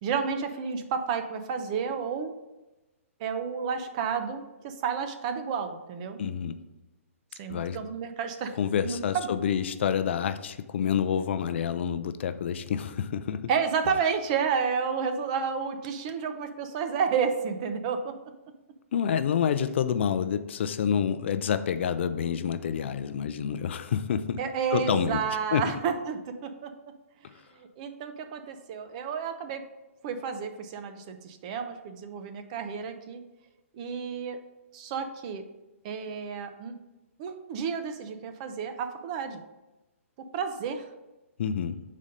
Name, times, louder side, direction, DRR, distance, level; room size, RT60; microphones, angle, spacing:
voice 1, 0.0-2.3 3.2-6.2 7.3-8.6 8.8-9.3 13.5-18.1 24.4-26.7 27.5-29.6 30.0-33.2 33.7-34.4 34.7-35.4 35.8-36.7 37.2-39.4 40.3-40.9, right 6 dB, 30° right, 8 dB, 0.5 m, -31 dB
voice 2, 6.2-6.6 7.5-7.8 8.5-13.5 18.9-24.4 24.7-25.2 25.5-25.7 27.2-27.3 41.4-41.8, left 8 dB, 55° left, 11 dB, 0.4 m, -28 dB
5.1 x 4.2 x 5.1 m, 1.0 s
hypercardioid pair, 160°, 8 cm